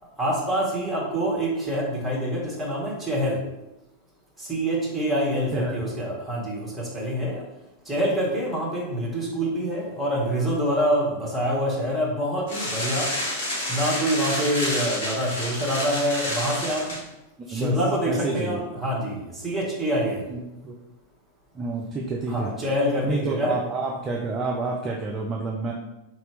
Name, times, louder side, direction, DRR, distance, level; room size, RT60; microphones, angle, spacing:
voice 1, 0.2-3.4 4.4-7.4 7.9-13.1 13.7-17.0 17.5-20.3 22.3-23.6, equal, 5° right, -5 dB, 1.3 m, -26 dB
sound 1, 12.5-17.0, left 1 dB, 55° left, 1.4 m, -29 dB
voice 2, 18.1-18.6 20.3-20.8 21.5-22.5 23.0-25.7, right 3 dB, 25° right, -1 dB, 0.4 m, -29 dB
3.7 x 2.9 x 3.3 m, 0.94 s
figure-of-eight pair, 90°, 0 cm